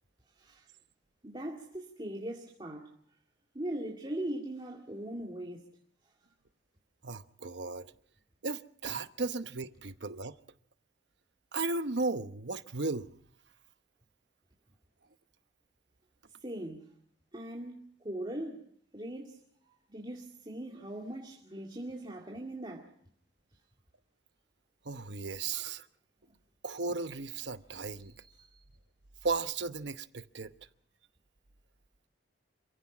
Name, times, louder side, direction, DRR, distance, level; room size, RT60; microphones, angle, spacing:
voice 1, 0.4-0.7 1.2-2.9 3.5-5.7 16.4-16.9 17.3-22.9 28.0-28.6, right 1 dB, 25° right, 2.3 m, -40 dB
voice 2, 7.0-7.9 8.4-10.4 11.5-13.1 24.8-25.9 26.6-28.2 29.2-30.5, right 3 dB, 70° right, 1.0 m, -35 dB
27.5 x 16.0 x 6.2 m
head